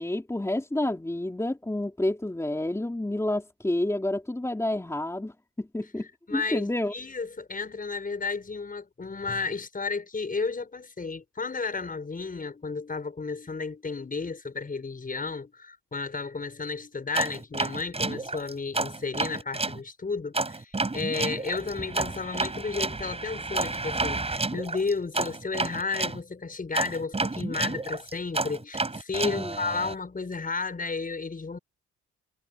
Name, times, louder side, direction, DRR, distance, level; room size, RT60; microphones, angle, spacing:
voice 1, 0.0-6.9 29.2-29.5, left 1 dB, 10° left, 4.0 m, -29 dB
voice 2, 6.3-31.6, left 4 dB, 30° left, 6.3 m, -33 dB
sound 1, 17.1-19.8 20.3-26.2 26.7-29.9, right 3 dB, 20° right, 5.9 m, -30 dB
cardioid pair, 90°, 30 cm